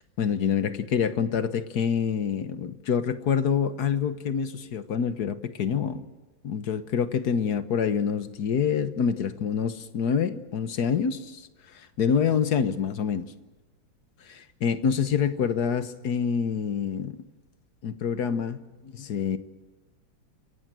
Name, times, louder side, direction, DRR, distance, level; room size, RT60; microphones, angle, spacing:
voice 1, 0.2-6.0 6.4-11.4 11.7-13.2 14.3-17.2 17.8-19.4, left 7 dB, 60° left, 1.6 m, -26 dB
28.5 x 15.5 x 9.0 m
omnidirectional pair, 2.1 m